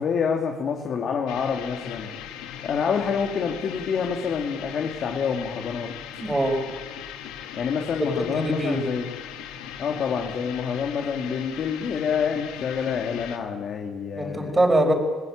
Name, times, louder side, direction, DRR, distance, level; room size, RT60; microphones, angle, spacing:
voice 1, 0.0-2.1 2.6-5.9 7.6-9.1 9.8-14.5, left 6 dB, 55° left, 2 dB, 2.7 m, -27 dB
sound 1, 1.3-13.4, left 9 dB, 85° left, 2.2 m, -39 dB
voice 2, 6.2-6.6 8.0-8.8 14.2-14.9, right 1 dB, 15° right, 3 dB, 5.1 m, -23 dB
27.0 x 19.0 x 8.9 m, 1.4 s
supercardioid pair, 90°, 0 cm